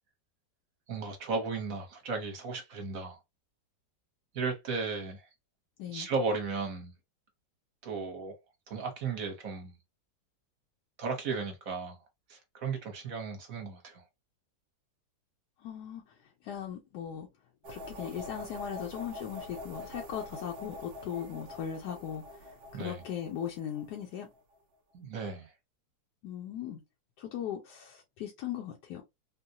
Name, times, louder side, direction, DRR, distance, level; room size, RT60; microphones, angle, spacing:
voice 1, 0.9-3.2 4.3-5.3 5.9-6.9 7.8-8.3 8.7-9.8 11.0-12.0 12.3-14.0 22.7-23.0 24.9-25.5, right 4 dB, 55° right, 1.2 m, -35 dB
voice 2, 15.6-16.0 16.4-17.3 17.7-24.3 26.2-26.8 27.2-29.0, left 9 dB, 75° left, 1.1 m, -38 dB
sound 1, 17.6-24.5, left 1 dB, 85° right, 0.5 m, -45 dB
3.8 x 2.1 x 2.7 m
omnidirectional pair, 1.9 m